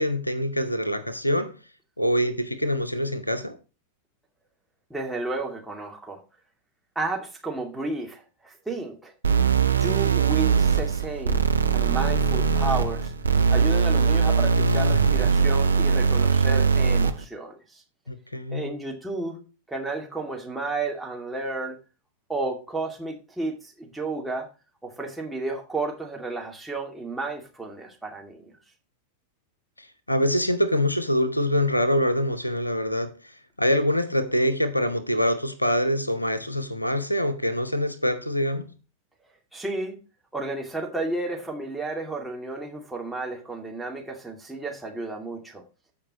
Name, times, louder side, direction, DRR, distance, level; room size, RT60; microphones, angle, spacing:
voice 1, 0.0-1.5 2.0-3.6 18.1-18.7 29.8-38.7, equal, 85° left, 0.9 m, -25 dB
voice 2, 4.9-6.2 7.0-9.1 9.6-11.4 11.7-13.1 13.5-17.8 18.5-19.4 19.7-21.8 22.3-24.5 24.8-28.6 39.5-40.0 40.3-45.6, right 2 dB, 5° right, 2.3 m, -32 dB
sound 1, 9.2-17.2, right 5 dB, 75° right, 0.8 m, -21 dB
14.5 x 5.3 x 3.0 m
figure-of-eight pair, 90°, 0 cm